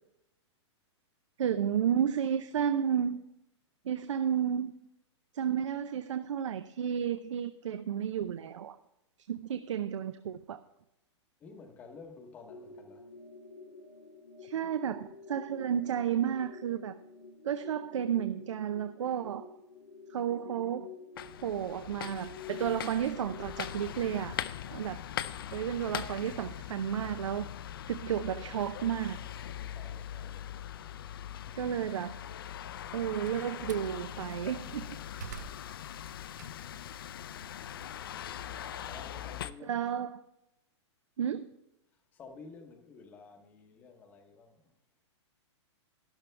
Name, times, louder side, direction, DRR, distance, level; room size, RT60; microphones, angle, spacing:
voice 1, 1.4-3.2 3.8-4.7 5.3-8.8 9.3-10.6 14.4-17.0 17.4-19.5 20.1-20.9 21.4-24.4 24.7-25.0 25.5-27.5 27.9-29.2 31.5-32.1 32.9-35.0 39.7-40.2 41.2-41.5, right 9 dB, 90° right, 0.7 m, -32 dB
voice 2, 11.4-13.1 29.7-30.5 31.4-32.0 35.2-35.7 38.8-39.8 42.1-44.7, left 4 dB, 10° left, 0.8 m, -52 dB
sound 1, 12.5-24.3, left 5 dB, 70° left, 1.8 m, -49 dB
sound 2, 21.2-39.5, left 10 dB, 50° left, 0.5 m, -41 dB
Slam, 32.8-33.9 34.5-36.9 37.3-39.7, right 8 dB, 40° right, 0.4 m, -50 dB
12.5 x 11.5 x 3.3 m
hypercardioid pair, 180°, 15 cm